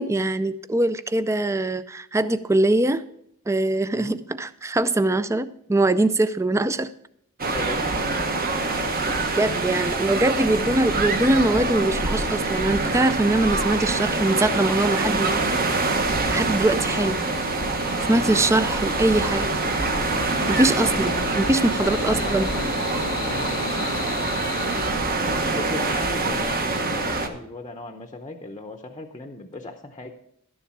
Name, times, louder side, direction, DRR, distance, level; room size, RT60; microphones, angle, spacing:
voice 1, 0.0-3.0 3.5-6.9 9.4-15.6 16.3-17.2 18.1-19.5 20.5-22.5, right 2 dB, 15° right, 15 dB, 0.4 m, -22 dB
voice 2, 7.4-8.2 16.8-17.4 20.6-21.1 21.8-22.7 23.2-24.0 25.4-30.1, left 2 dB, 20° left, 5 dB, 0.7 m, -38 dB
sound 1, 7.4-27.3, right 3 dB, 40° right, 1.1 m, -25 dB
sound 2, 16.7-24.9, left 6 dB, 85° left, 0.6 m, -35 dB
12.0 x 7.1 x 6.0 m, 0.72 s
head